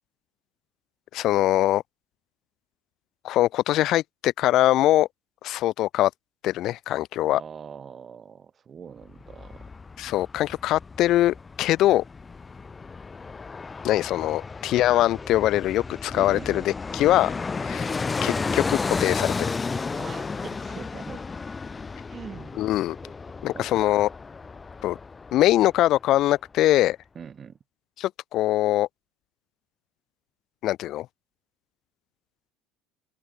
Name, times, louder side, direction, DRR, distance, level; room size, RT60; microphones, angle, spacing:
voice 1, 1.1-1.8 3.2-5.1 5.4-6.1 6.4-7.4 10.0-12.0 13.8-17.3 17.6-17.9 18.2-19.5 22.6-23.0 23.4-24.1 24.8-25.0 25.3-27.0 28.0-28.9 30.6-31.1, left 14 dB, 60° left, 0.5 m, -22 dB
voice 2, 7.3-9.7 16.1-16.7 19.9-21.2 22.1-22.7 23.5-23.8 27.2-27.6, right 7 dB, 35° right, 3.6 m, -42 dB
Fixed-wing aircraft airplane, 9.0-26.0 26.3-26.4, left 4 dB, 20° left, 3.8 m, -33 dB
open air
supercardioid pair, 110°, 0 cm